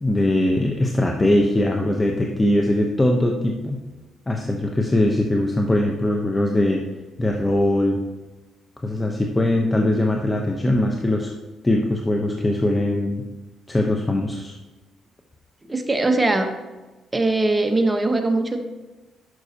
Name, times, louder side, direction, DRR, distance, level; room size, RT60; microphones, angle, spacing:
voice 1, 0.0-3.8 4.3-6.8 7.2-8.0 8.8-11.3 11.6-13.2 13.7-14.5, left 1 dB, 15° left, 1 dB, 0.8 m, -21 dB
voice 2, 15.7-16.5 17.1-18.6, right 2 dB, 15° right, 5 dB, 1.0 m, -20 dB
10.5 x 6.2 x 2.8 m, 1.2 s
cardioid pair, 90°, 0 cm